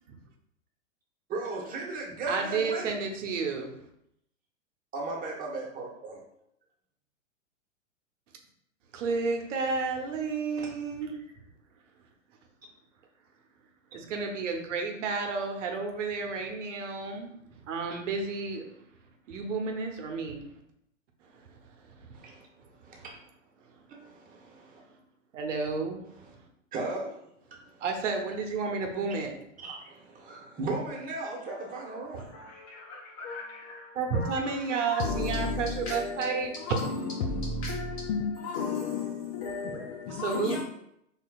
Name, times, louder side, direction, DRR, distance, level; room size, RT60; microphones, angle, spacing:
voice 1, 1.3-2.9 4.9-6.2 10.6-10.7 22.1-22.3 22.8-23.1 23.9-24.8 26.7-27.1 29.6-32.4, right 3 dB, 20° right, 1.1 m, -36 dB
voice 2, 2.3-3.7 8.9-11.2 13.9-17.3 17.7-18.7 19.3-20.4 22.0-22.1 22.9-23.0 25.3-26.0 27.8-29.4 32.1-32.2 33.9-36.5 40.1-40.6, right 4 dB, 65° right, 0.9 m, -31 dB
voice 3, 31.5-40.6, left 4 dB, 30° left, 0.4 m, -34 dB
4.4 x 3.2 x 2.4 m
hypercardioid pair, 110°, 40 cm